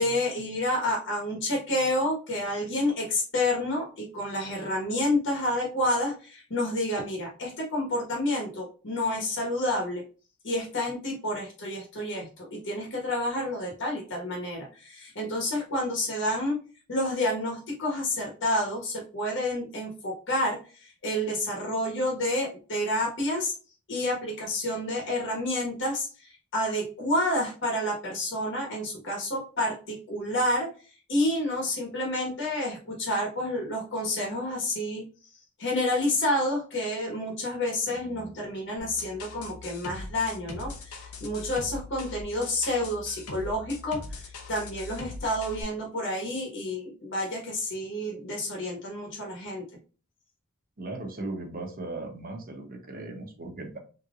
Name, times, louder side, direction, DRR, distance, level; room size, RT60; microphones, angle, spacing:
voice 1, 0.0-10.0 10.4-16.6 16.9-23.5 23.9-30.7 31.1-35.0 35.6-49.6, left 1 dB, 55° left, -1 dB, 1.2 m, -29 dB
sound 1, 38.8-45.6, left 3 dB, 75° left, 0.8 m, -41 dB
voice 2, 50.8-53.8, right 2 dB, 40° right, 3 dB, 0.9 m, -37 dB
3.6 x 3.0 x 2.4 m, 0.35 s
head